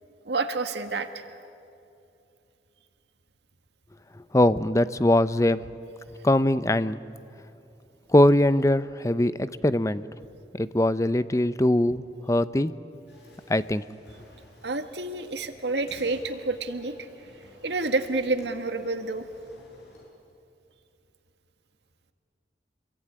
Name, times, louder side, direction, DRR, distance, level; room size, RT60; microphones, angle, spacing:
voice 1, 0.2-1.3 14.6-17.1 17.6-19.3, right 3 dB, 80° right, 8 dB, 1.7 m, -29 dB
voice 2, 4.3-5.7 6.2-7.1 8.1-10.0 10.5-12.7 13.5-13.8, left 1 dB, 15° left, 15 dB, 0.6 m, -22 dB
sound 1, 13.1-20.1, left 1 dB, 75° left, 7.3 m, -54 dB
27.0 x 22.0 x 9.8 m, 2.7 s
head